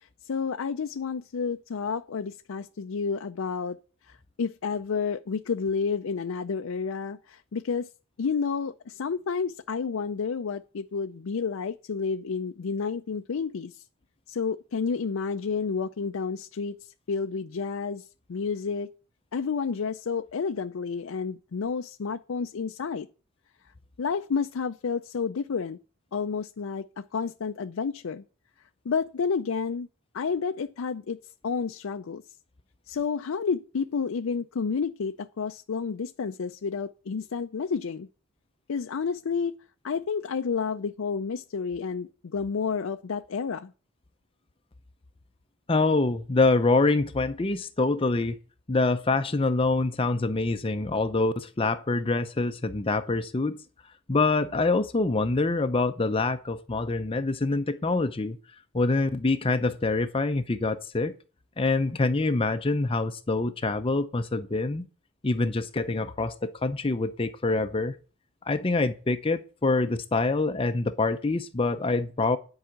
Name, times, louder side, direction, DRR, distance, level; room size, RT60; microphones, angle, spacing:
voice 1, 0.0-3.8 4.4-7.9 8.2-13.8 14.3-16.8 17.1-18.0 18.3-18.9 19.3-23.1 24.0-25.8 26.1-28.2 28.9-29.9 30.1-31.2 31.4-32.2 32.9-38.1 38.7-39.5 39.8-43.7, left 5 dB, 75° left, 0.5 m, -30 dB
voice 2, 45.7-48.4 48.7-53.6 54.1-58.4 58.7-61.1 61.6-64.8 65.2-67.9 68.5-72.4, left 3 dB, 25° left, 0.5 m, -25 dB
10.5 x 4.8 x 7.9 m
head